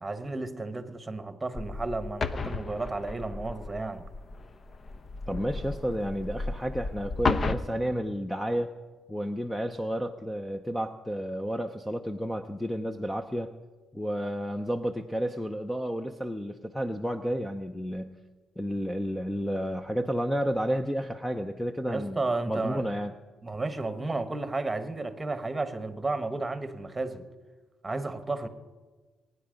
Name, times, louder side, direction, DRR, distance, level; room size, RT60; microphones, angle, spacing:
voice 1, 0.0-4.1 21.9-22.9 23.4-27.3 27.8-28.5, right 3 dB, 20° right, 1.3 m, -32 dB
sound 1, 1.5-7.6, left 3 dB, 40° left, 0.8 m, -33 dB
voice 2, 5.3-8.7 9.1-13.5 13.9-18.2 18.6-22.2 22.5-23.1, equal, 5° left, 0.7 m, -31 dB
22.5 x 9.8 x 5.2 m
cardioid pair, 90°, 0 cm